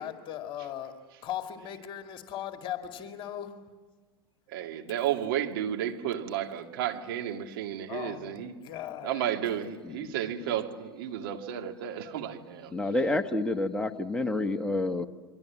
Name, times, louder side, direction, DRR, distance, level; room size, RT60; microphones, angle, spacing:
voice 1, 0.0-3.6 7.9-9.2, left 10 dB, 40° left, 5 dB, 2.3 m, -38 dB
voice 2, 4.5-8.5 9.0-12.7, right 10 dB, 65° right, 4 dB, 2.4 m, -32 dB
voice 3, 12.7-15.1, left 2 dB, 5° left, 5 dB, 1.5 m, -29 dB
28.0 x 23.5 x 7.5 m, 1.3 s
hypercardioid pair, 90°, 13 cm